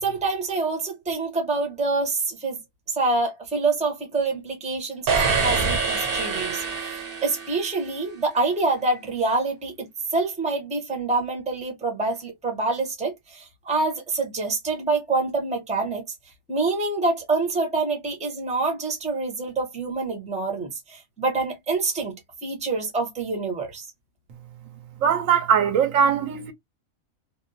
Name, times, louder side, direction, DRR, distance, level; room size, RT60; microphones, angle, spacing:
voice 1, 0.0-2.6 2.9-16.0 16.5-22.1 22.4-23.8, right 3 dB, 5° right, 0.6 m, -26 dB
sound 1, 5.1-7.9, right 4 dB, 50° right, 0.8 m, -25 dB
voice 2, 25.0-26.5, right 7 dB, 75° right, 1.0 m, -20 dB
2.6 x 2.0 x 2.6 m
omnidirectional pair, 1.4 m